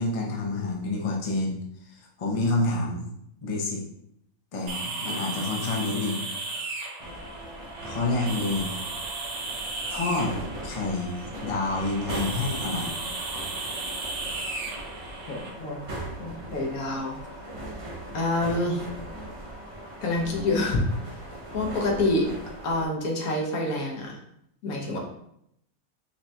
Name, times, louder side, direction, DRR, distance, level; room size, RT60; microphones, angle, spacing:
voice 1, 0.0-1.6 1.9-3.1 3.4-3.8 4.5-6.2 7.8-8.7 9.9-10.3 10.6-13.0, left 2 dB, 45° left, -1 dB, 0.4 m, -28 dB
sound 1, 4.7-15.5, right 3 dB, 80° right, 1.2 m, -35 dB
sound 2, 7.0-22.8, right 1 dB, 45° right, 0.4 m, -39 dB
voice 2, 15.3-15.8 16.2-17.2 18.1-18.8 20.0-20.8 21.5-22.3 22.6-24.2 24.6-25.0, left 2 dB, 75° left, 0 dB, 1.3 m, -27 dB
5.5 x 2.2 x 2.7 m, 0.75 s
omnidirectional pair, 1.5 m